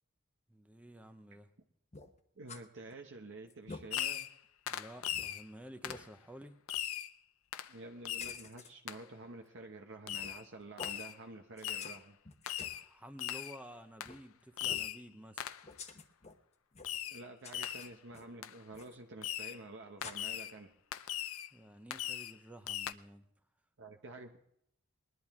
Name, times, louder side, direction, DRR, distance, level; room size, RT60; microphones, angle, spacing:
voice 1, 0.5-1.5 4.7-6.6 12.7-15.5 21.5-23.3, right 1 dB, 5° right, 7 dB, 0.7 m, -52 dB
sound 1, 1.9-2.6 3.0-3.1 3.5-3.8 4.4-4.5 5.1-5.2 5.8-6.0 8.2-8.7 10.1-10.4 10.8-11.0 11.6-12.0 12.2-12.8 14.0-14.2 14.6-14.9 15.6-16.4 16.7-17.1 17.4-18.3 18.7-19.0 20.0-20.1, left 4 dB, 30° left, 0.9 m, -49 dB
voice 2, 2.4-4.3 7.7-12.2 17.1-20.7 23.8-24.4, right 2 dB, 55° right, 3 dB, 0.9 m, -49 dB
Fireworks, 3.9-4.4 4.7-5.4 5.8-6.1 6.7-7.1 7.5-7.7 8.1-8.4 8.9-9.0 10.1-10.4 10.8-11.2 11.6-12.0 12.5-12.8 13.2-13.6 14.0-14.2 14.6-15.0 15.4-15.7 16.8-17.2 17.5-17.9 18.4-18.5 19.2-19.6 20.0-20.5 20.9-21.5 21.9-22.4 22.7-22.9, left 11 dB, 65° left, 0.6 m, -39 dB
20.5 x 11.0 x 3.6 m, 0.72 s
head